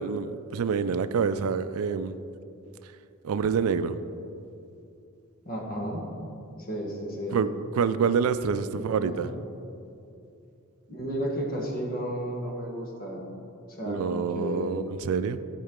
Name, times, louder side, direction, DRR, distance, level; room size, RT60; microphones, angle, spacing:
voice 1, 0.0-2.1 3.2-4.0 7.3-7.5 7.7-9.3 13.9-15.4, right 6 dB, 85° right, 13 dB, 0.3 m, -27 dB
voice 2, 5.4-6.0 6.7-7.4 8.7-9.3 10.9-13.3 13.7-14.8, equal, 40° left, -1 dB, 1.3 m, -33 dB
13.5 x 4.5 x 3.7 m, 2.6 s
head